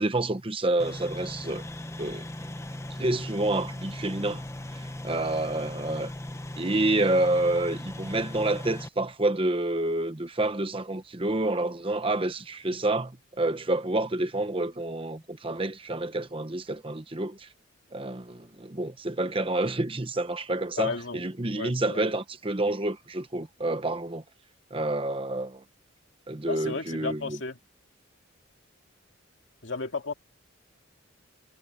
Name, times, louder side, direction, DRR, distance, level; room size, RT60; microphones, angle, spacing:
voice 1, 0.0-1.6 2.0-2.3 3.0-4.4 4.7-6.1 6.6-17.5 17.9-24.2 24.7-25.6 26.3-27.4, right 2 dB, 25° right, 1.0 m, -28 dB
sound 1, 0.8-8.9, left 1 dB, 15° left, 0.9 m, -38 dB
voice 2, 20.8-21.2 21.6-22.1 26.5-27.6 29.6-30.1, left 3 dB, 65° left, 2.4 m, -33 dB
head